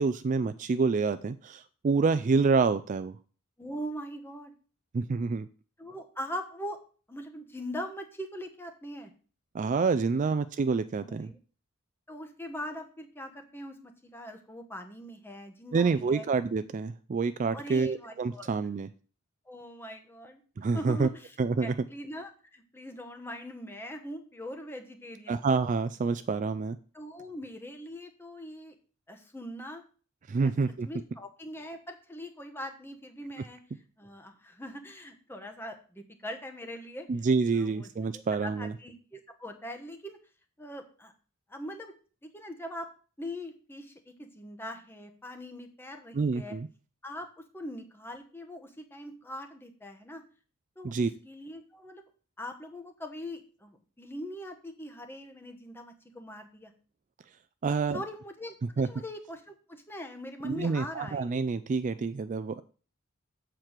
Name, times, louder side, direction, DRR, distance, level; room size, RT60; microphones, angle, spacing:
voice 1, 0.0-3.2 4.9-5.5 9.5-11.3 15.7-18.9 20.6-21.1 21.4-21.7 25.3-26.8 30.3-30.9 37.1-38.7 46.1-46.7 50.8-51.1 57.6-58.0 58.8-58.9 60.4-62.6, right 4 dB, 35° right, 12 dB, 0.3 m, -27 dB
voice 2, 3.6-4.5 5.8-6.8 7.1-9.1 11.0-11.4 12.1-16.2 17.5-18.5 19.5-20.4 20.7-21.3 21.6-25.4 26.9-28.8 29.1-29.8 30.4-30.5 30.8-33.6 34.0-37.1 37.5-40.2 40.6-41.1 41.5-42.0 42.3-42.9 43.2-46.5 47.0-50.2 50.8-52.1 52.4-56.7 57.9-61.4, equal, 10° left, 4 dB, 1.0 m, -42 dB
7.6 x 4.5 x 6.5 m, 0.39 s
head